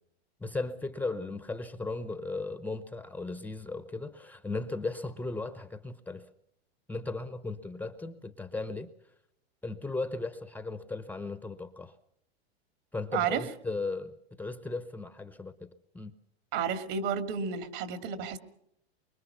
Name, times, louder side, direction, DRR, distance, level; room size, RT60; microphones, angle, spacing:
voice 1, 0.4-6.3 6.9-8.9 9.6-11.9 12.9-16.1, left 3 dB, 5° left, 11 dB, 0.8 m, -36 dB
voice 2, 13.1-13.5 16.5-18.4, right 7 dB, 50° right, 10 dB, 2.3 m, -31 dB
24.5 x 22.5 x 5.8 m, 0.75 s
hypercardioid pair, 125°, 32 cm